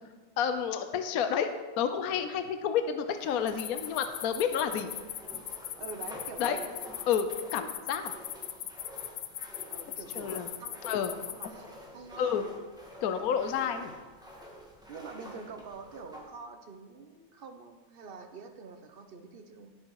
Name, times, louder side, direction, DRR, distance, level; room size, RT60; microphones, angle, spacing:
voice 1, 0.4-1.5 1.8-4.9 6.4-6.6 7.1-8.1 10.1-10.5 10.8-11.1 12.2-12.5 13.0-13.9, left 8 dB, 60° left, 8 dB, 1.1 m, -30 dB
sound 1, 3.1-16.3, equal, ahead, 1.5 m, -49 dB
sound 2, 3.5-11.5, left 12 dB, 80° left, 1.4 m, -39 dB
voice 2, 5.8-6.7 9.7-10.8 11.3-12.5 14.9-19.7, right 4 dB, 40° right, 6 dB, 0.9 m, -46 dB
17.0 x 6.8 x 4.8 m, 1.3 s
omnidirectional pair, 2.0 m